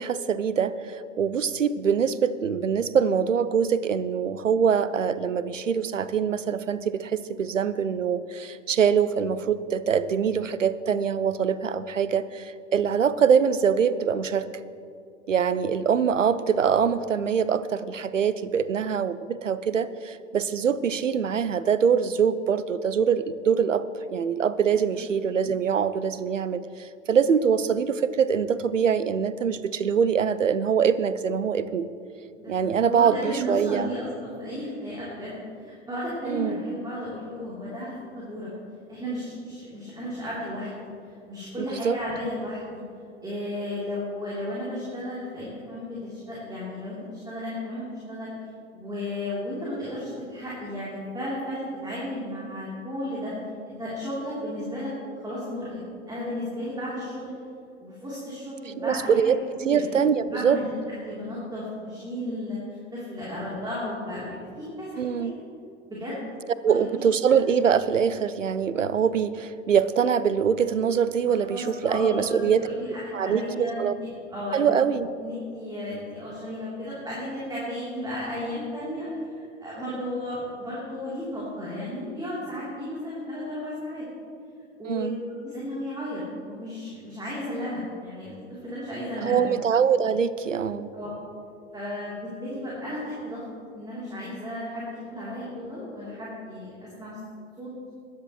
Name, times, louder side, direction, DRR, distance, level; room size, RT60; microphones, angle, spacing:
voice 1, 0.0-14.5 15.3-31.9 32.5-33.9 36.3-36.6 41.7-42.0 58.8-60.6 65.0-65.4 66.6-72.7 73.1-73.9 74.5-75.1 84.9-85.1 89.2-90.9, right 7 dB, 80° right, 16 dB, 0.6 m, -24 dB
voice 2, 32.4-38.5 38.9-42.8 43.2-48.3 48.7-53.3 53.6-54.9 55.2-57.3 57.8-59.3 59.6-59.8 60.2-60.7 61.0-64.2 64.6-65.3 65.9-66.1 66.6-66.7 71.4-73.9 74.3-74.8 75.2-84.0 84.8-85.1 85.4-89.4 90.9-91.1 91.7-93.4 93.7-97.2 97.6-97.7, left 1 dB, 10° right, -8 dB, 3.4 m, -34 dB
21.0 x 10.5 x 3.1 m, 2.5 s
figure-of-eight pair, 95°, 37 cm